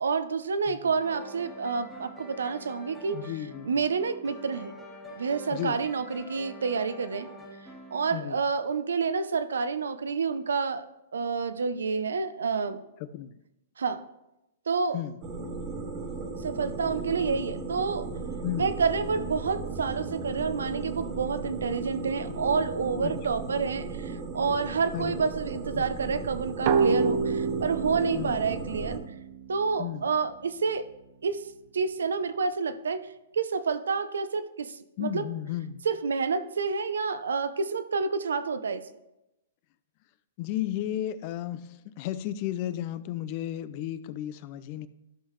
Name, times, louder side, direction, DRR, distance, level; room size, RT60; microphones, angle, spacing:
voice 1, 0.0-3.2 3.6-4.7 5.2-7.3 7.9-10.8 11.1-12.8 13.8-14.0 14.7-15.0 16.4-18.1 18.6-29.0 29.5-30.9 31.2-31.5 31.7-33.1 33.3-35.3 35.9-38.8, right 5 dB, 85° right, 11 dB, 0.7 m, -29 dB
sound 1, 1.0-8.1, equal, 10° left, 1.7 m, -46 dB
voice 2, 3.1-3.7 5.5-5.8 8.1-8.4 13.0-13.3 14.9-15.2 18.4-18.7 23.0-23.2 24.9-25.3 25.7-25.9 28.1-28.4 29.8-30.0 35.0-35.8 40.4-44.9, left 12 dB, 40° left, 15 dB, 0.5 m, -34 dB
sound 2, 15.2-29.0, right 3 dB, 30° right, 1.4 m, -36 dB
sound 3, 26.7-30.1, right 5 dB, 50° right, 0.7 m, -28 dB
12.5 x 5.6 x 3.2 m, 0.90 s
hypercardioid pair, 140°, 0 cm